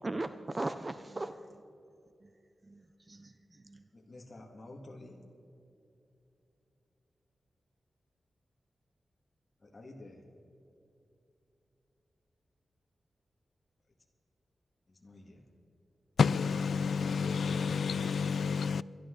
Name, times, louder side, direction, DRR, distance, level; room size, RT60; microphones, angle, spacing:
voice 1, 0.0-1.6 2.2-2.3 2.6-3.9, right 2 dB, 25° right, 0.4 m, -39 dB
voice 2, 3.9-5.2 9.6-10.3 14.9-15.5, left 2 dB, 35° left, 2.0 m, -50 dB
voice 3, 16.2-18.8, left 5 dB, 75° left, 0.3 m, -29 dB
23.0 x 12.0 x 3.9 m
wide cardioid pair, 115°, 0 cm